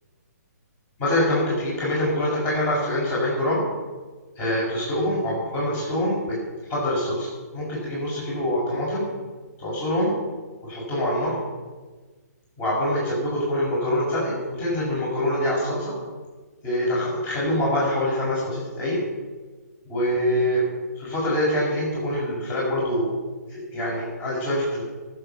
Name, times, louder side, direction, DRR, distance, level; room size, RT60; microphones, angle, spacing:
voice 1, 1.0-3.6 4.4-6.4 6.7-9.1 9.6-10.1 10.6-11.4 12.6-15.9 16.6-19.0 19.9-20.6 21.0-23.1 23.5-24.8, left 1 dB, 20° left, -5 dB, 6.0 m, -25 dB
23.5 x 7.8 x 5.8 m, 1.3 s
hypercardioid pair, 145°, 9 cm